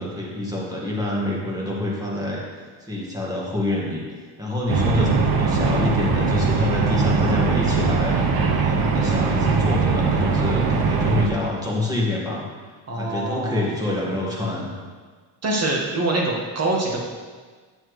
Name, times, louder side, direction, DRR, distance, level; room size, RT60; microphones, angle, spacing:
voice 1, 0.0-4.0 4.4-12.5 12.9-14.7, left 2 dB, 10° right, -4 dB, 1.7 m, -27 dB
sound 1, 4.7-11.3, right 4 dB, 50° right, 1.0 m, -21 dB
voice 2, 12.9-13.7 15.4-17.0, right 2 dB, 30° right, -1 dB, 1.6 m, -24 dB
9.3 x 7.3 x 3.2 m, 1.5 s
cardioid pair, 135°, 48 cm